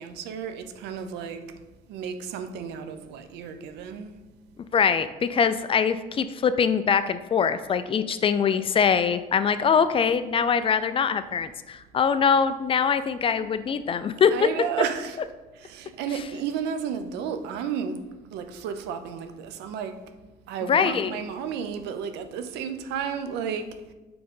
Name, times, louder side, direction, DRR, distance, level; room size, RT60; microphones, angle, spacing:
voice 1, 0.0-1.4 1.9-4.2 14.3-15.2 15.6-18.0 18.3-20.0 20.5-23.8, right 7 dB, 85° right, 0.6 m, -32 dB
voice 2, 4.7-14.3 20.7-21.1, left 6 dB, 30° left, 0.4 m, -23 dB
5.9 x 3.8 x 5.3 m
cardioid pair, 110°, 17 cm